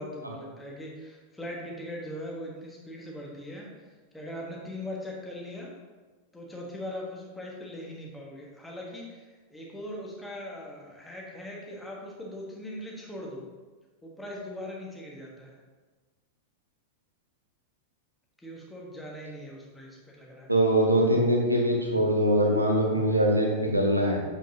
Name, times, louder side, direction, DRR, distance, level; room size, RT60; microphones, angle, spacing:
voice 1, 0.0-3.7 4.1-5.7 6.3-13.4 14.0-15.5 18.4-20.5, left 1 dB, 5° left, -2 dB, 1.4 m, -40 dB
voice 2, 20.5-24.2, right 1 dB, 85° right, 0 dB, 1.0 m, -23 dB
7.4 x 5.1 x 2.8 m, 1.3 s
figure-of-eight pair, 90°, 0 cm